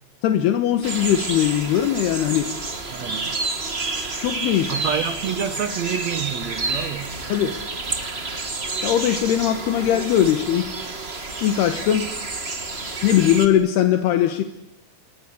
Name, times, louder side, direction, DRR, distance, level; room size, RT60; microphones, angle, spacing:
voice 1, 0.2-2.5 4.2-4.8 7.3-7.6 8.8-10.7 11.4-12.0 13.0-14.4, left 10 dB, 80° left, 7 dB, 3.3 m, -20 dB
sound 1, 0.8-13.5, right 3 dB, 30° right, 1.1 m, -29 dB
voice 2, 2.9-3.4 4.7-7.2, right 8 dB, 60° right, 11 dB, 1.9 m, -28 dB
28.5 x 21.5 x 8.5 m, 0.87 s
omnidirectional pair, 4.7 m